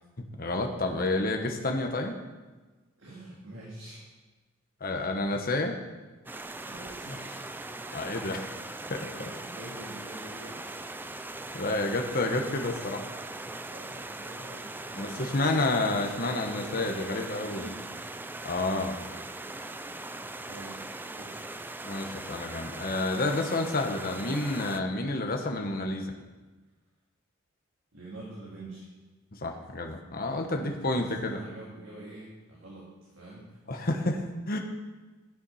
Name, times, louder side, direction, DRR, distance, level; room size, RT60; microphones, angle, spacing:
voice 1, 0.2-2.2 4.8-5.8 7.9-8.5 8.9-9.0 11.5-13.0 15.0-17.7 18.4-19.0 21.8-26.1 29.3-31.4 33.7-34.6, left 2 dB, 45° left, 3 dB, 1.2 m, -30 dB
voice 2, 3.0-4.1 6.5-7.5 9.1-10.8 13.7-18.0 20.5-21.7 27.9-28.9 30.1-30.2 30.5-33.9, right 1 dB, 60° right, -6 dB, 2.8 m, -46 dB
Stream, 6.3-24.8, right 2 dB, 10° right, 0.3 m, -40 dB
13.0 x 7.1 x 5.7 m, 1.3 s
head